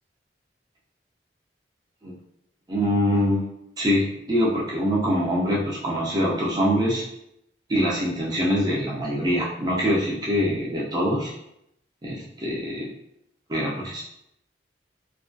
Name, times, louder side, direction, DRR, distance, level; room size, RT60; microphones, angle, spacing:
voice 1, 2.7-3.5 3.8-7.0 7.7-11.3 12.0-12.9 13.5-14.0, equal, 25° right, -4 dB, 0.4 m, -24 dB
2.3 x 2.2 x 2.5 m, 0.78 s
head